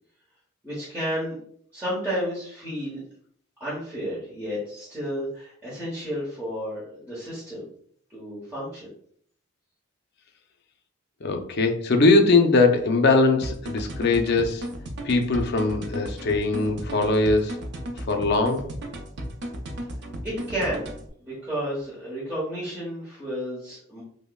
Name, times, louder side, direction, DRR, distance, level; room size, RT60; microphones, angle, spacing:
voice 1, 0.6-1.4 1.7-3.0 3.6-7.7 8.1-8.9 20.2-24.0, equal, 10° right, -9 dB, 1.0 m, -32 dB
voice 2, 11.2-14.7 15.0-17.6 18.0-18.7, left 3 dB, 50° left, 5 dB, 0.4 m, -21 dB
sound 1, 13.4-21.1, equal, 50° right, 0.5 m, -35 dB
5.3 x 2.1 x 2.3 m, 0.62 s
head